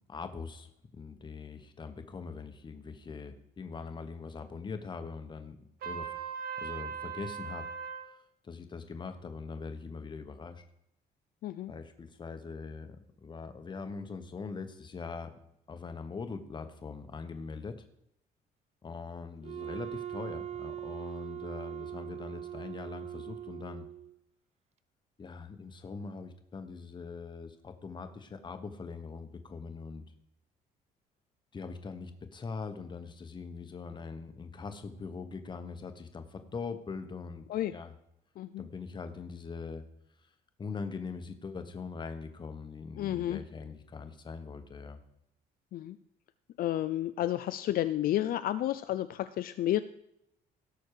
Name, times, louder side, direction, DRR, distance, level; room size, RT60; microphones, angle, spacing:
voice 1, 0.1-5.6 5.8-6.2 6.6-7.7 8.4-10.6 11.7-15.3 15.7-17.8 18.8-23.9 25.2-30.0 31.5-37.9 38.6-39.8 40.6-45.0, left 4 dB, 30° left, 8 dB, 1.3 m, -42 dB
Trumpet, 5.8-8.1, right 7 dB, 65° right, 2.1 m, -39 dB
Wind instrument woodwind instrument, 19.4-24.1, right 10 dB, 40° right, 0.7 m, -41 dB
voice 2, 38.4-38.7 43.0-43.4 45.7-46.0 46.6-49.8, left 13 dB, 60° left, 12 dB, 0.5 m, -31 dB
17.5 x 6.4 x 4.9 m, 0.81 s
cardioid pair, 125°, 16 cm